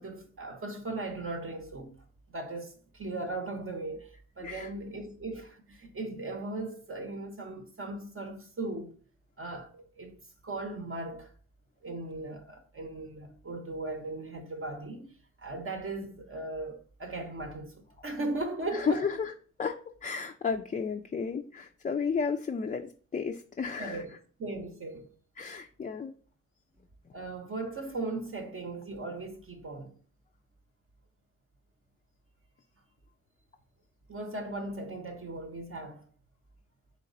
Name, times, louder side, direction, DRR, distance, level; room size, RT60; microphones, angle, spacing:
voice 1, 0.0-2.0 2.3-8.9 9.4-10.2 10.4-11.3 11.8-19.1 23.8-24.1 24.4-25.1 27.1-30.0 34.1-36.1, right 2 dB, 40° right, 0.8 m, -38 dB
voice 2, 18.7-19.3 19.6-24.0 25.4-26.1, left 5 dB, 25° left, 0.4 m, -33 dB
3.1 x 3.0 x 3.9 m
supercardioid pair, 40°, 32 cm